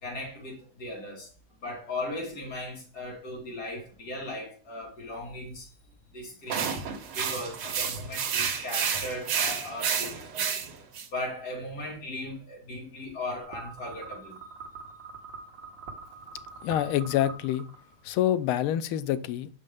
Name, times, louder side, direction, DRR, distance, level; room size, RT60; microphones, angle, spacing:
voice 1, 0.0-1.3 1.6-5.7 6.1-6.8 7.1-10.5 11.1-14.4, left 1 dB, 45° left, 2.6 m, -37 dB
sound 1, 6.5-11.1, right 7 dB, 85° right, 1.8 m, -30 dB
sound 2, 13.4-18.1, right 4 dB, 65° right, 1.7 m, -44 dB
voice 2, 16.6-17.7 18.0-19.5, left 11 dB, 85° left, 1.4 m, -26 dB
6.1 x 5.4 x 3.5 m
omnidirectional pair, 2.3 m